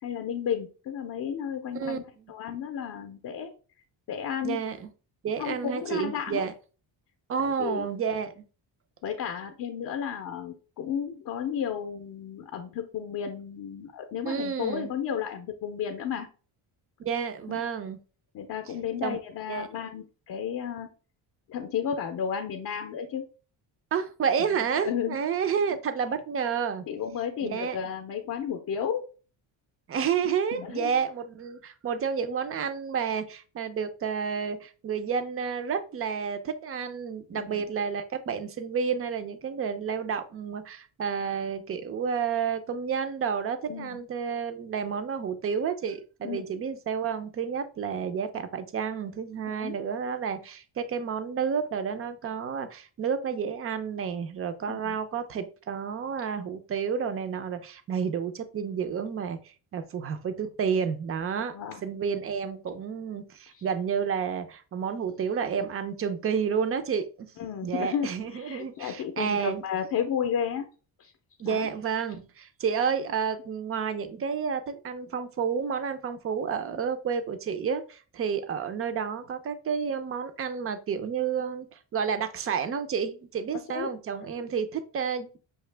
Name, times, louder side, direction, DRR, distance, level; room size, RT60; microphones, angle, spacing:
voice 1, 0.0-2.0 2.3-3.5 4.1-4.6 5.4-6.5 7.4-7.9 9.0-16.3 17.5-17.6 18.3-20.9 21.5-23.2 24.8-25.2 26.9-29.0 30.5-30.9 37.3-37.6 43.7-44.0 46.2-46.4 49.4-49.8 54.7-55.0 61.5-61.8 63.5-63.6 67.4-70.6 71.0-71.1 71.4-71.7 83.7-83.9, left 8 dB, 45° left, 4 dB, 0.5 m, -33 dB
voice 2, 4.4-4.9 5.2-6.5 7.3-8.4 14.2-14.9 17.0-18.0 19.0-19.2 19.5-19.7 23.9-26.8 27.4-27.8 29.9-61.5 61.8-67.1 67.6-69.6 71.4-85.4, right 6 dB, 35° right, 10 dB, 0.4 m, -30 dB
5.9 x 2.7 x 3.2 m, 0.36 s
cardioid pair, 170°, 47 cm